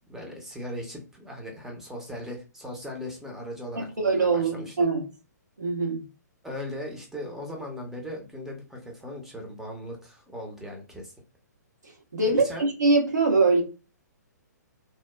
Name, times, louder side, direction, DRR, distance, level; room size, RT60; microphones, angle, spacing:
voice 1, 0.1-4.7 6.4-11.1 12.1-12.7, left 1 dB, 5° right, 0 dB, 0.7 m, -38 dB
voice 2, 3.8-5.0 5.6-6.0 12.1-13.6, right 3 dB, 70° right, 1 dB, 1.0 m, -23 dB
2.8 x 2.1 x 2.2 m, 0.31 s
figure-of-eight pair, 125°, 10 cm